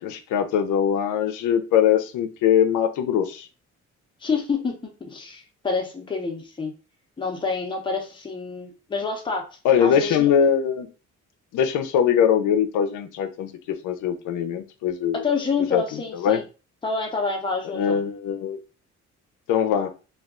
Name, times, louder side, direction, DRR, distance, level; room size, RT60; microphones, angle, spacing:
voice 1, 0.0-3.5 9.6-10.9 11.5-15.2 15.7-16.4 17.7-18.6 19.5-19.9, left 8 dB, 80° left, 9 dB, 0.5 m, -22 dB
voice 2, 4.2-4.7 5.0-6.7 7.2-9.4 9.8-10.3 15.2-16.4 16.8-18.0, left 4 dB, 15° left, 1 dB, 0.7 m, -27 dB
2.3 x 2.2 x 3.6 m, 0.33 s
cardioid pair, 90°, 30 cm